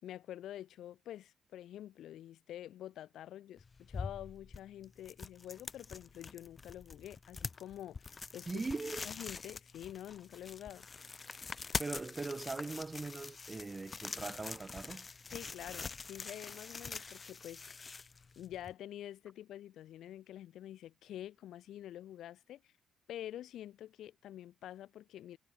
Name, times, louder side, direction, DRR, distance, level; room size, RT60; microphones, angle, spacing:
voice 1, 0.0-8.6 9.0-10.9 15.3-17.6 18.4-22.7 23.1-25.4, left 12 dB, 75° left, 2.8 m, -47 dB
sound 1, 3.6-18.7, left 4 dB, 30° left, 1.9 m, -45 dB
voice 2, 8.5-9.1 11.8-15.1, right 3 dB, 25° right, 4.7 m, -40 dB
cardioid pair, 90°, 0 cm